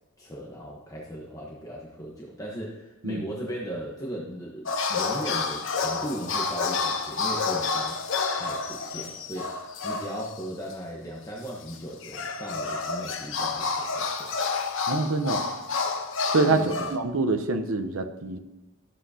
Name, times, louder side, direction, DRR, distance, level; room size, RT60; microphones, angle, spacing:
voice 1, 0.2-8.0 8.3-9.5 9.8-14.3 16.5-16.9, equal, 15° left, -3 dB, 1.0 m, -37 dB
sound 1, 4.7-10.4 10.7-10.8 11.7-17.0, left 4 dB, 65° left, 0.9 m, -29 dB
voice 2, 14.9-15.4 16.3-18.4, right 3 dB, 80° right, 8 dB, 0.8 m, -25 dB
13.0 x 7.4 x 2.8 m, 1.0 s
head